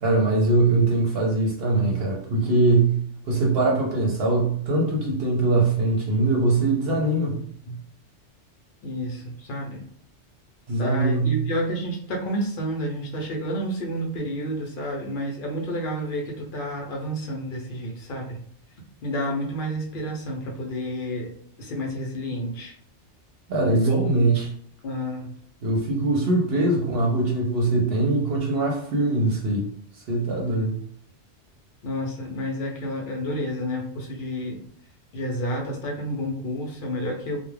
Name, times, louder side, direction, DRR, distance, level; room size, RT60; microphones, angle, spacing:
voice 1, 0.0-7.4 10.7-11.4 23.5-24.5 25.6-29.7 30.1-30.8, right 2 dB, 65° right, -1 dB, 0.8 m, -22 dB
voice 2, 8.8-9.8 10.8-18.4 19.0-21.3 21.6-22.7 24.8-25.3 31.8-34.6 35.1-37.4, equal, 55° left, 0 dB, 0.7 m, -30 dB
2.3 x 2.1 x 3.2 m, 0.62 s
omnidirectional pair, 1.2 m